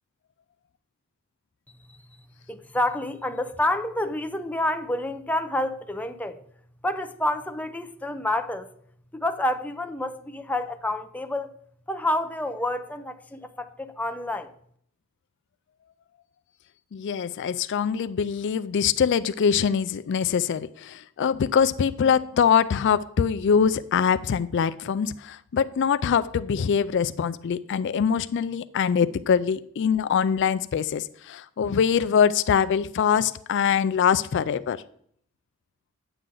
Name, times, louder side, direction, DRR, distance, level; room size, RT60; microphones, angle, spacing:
voice 1, 2.5-6.4 6.8-8.7 9.1-11.5 11.9-14.5, left 1 dB, 5° left, 0.5 m, -28 dB
voice 2, 16.9-34.8, left 7 dB, 55° left, 0.4 m, -23 dB
9.8 x 8.1 x 3.8 m
head